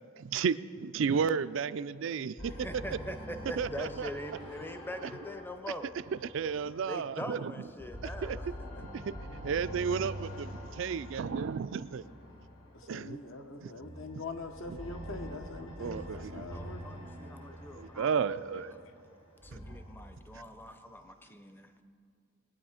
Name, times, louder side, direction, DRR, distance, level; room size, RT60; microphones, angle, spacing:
voice 1, 0.2-2.5 3.6-4.1 6.2-7.5 8.2-8.4 8.8-9.1 9.4-12.0 12.9-13.2 13.6-13.7 15.8-16.5 17.8-18.7, right 6 dB, 60° right, 0.3 m, -33 dB
sound 1, 2.4-7.3 7.7-13.0 13.8-19.8, equal, 80° left, 3.6 m, -45 dB
voice 2, 2.5-5.9 6.9-8.7 16.1-16.2 16.5-18.1 18.7-18.8 19.4-21.7, equal, 10° left, 0.6 m, -43 dB
voice 3, 12.7-17.0, left 3 dB, 65° left, 1.0 m, -43 dB
21.5 x 8.8 x 5.0 m
head